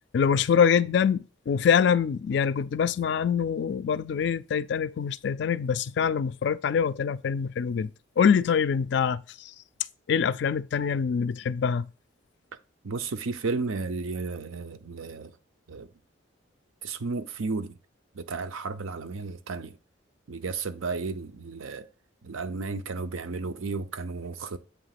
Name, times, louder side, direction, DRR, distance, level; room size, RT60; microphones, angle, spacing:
voice 1, 0.1-7.9 8.2-9.5 10.1-11.9, left 7 dB, 55° left, 0.3 m, -24 dB
voice 2, 12.8-15.3 15.7-15.9 16.8-17.8 18.1-19.7 20.3-21.9 22.2-24.6, right 4 dB, 85° right, 0.6 m, -33 dB
7.9 x 2.9 x 5.8 m
head